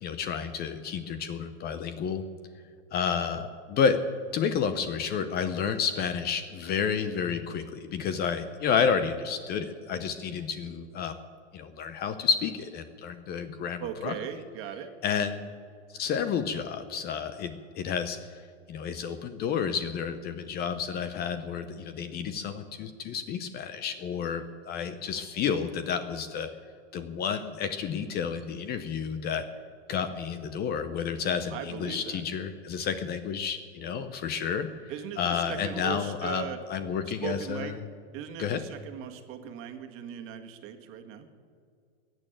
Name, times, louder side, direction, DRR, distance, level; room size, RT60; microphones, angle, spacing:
voice 1, 0.0-2.2 2.9-4.0 4.3-11.1 11.5-14.1 15.0-15.5 15.9-18.2 18.7-26.5 26.9-29.4 29.9-34.7 35.2-37.7 38.4-38.6, left 7 dB, 25° left, 11 dB, 0.7 m, -30 dB
voice 2, 13.8-14.9 31.5-32.2 34.9-36.6 37.2-37.8 38.1-41.3, right 9 dB, 35° right, 5 dB, 1.7 m, -38 dB
15.5 x 8.9 x 9.0 m, 2.2 s
supercardioid pair, 135°, 35 cm